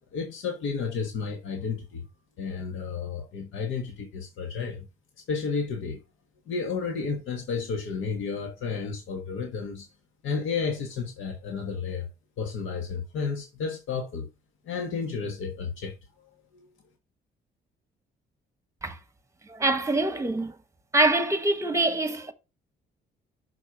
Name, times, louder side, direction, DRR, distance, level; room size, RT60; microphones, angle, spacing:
voice 1, 0.1-2.0 2.4-4.8 5.3-6.0 6.5-9.9 10.2-12.1 12.4-14.3 14.7-15.9 16.5-16.7, left 5 dB, 80° left, 1.5 m, -32 dB
voice 2, 19.5-20.5 20.9-22.3, right 2 dB, 15° right, 1.2 m, -24 dB
6.3 x 4.6 x 5.6 m
cardioid pair, 90°, 20 cm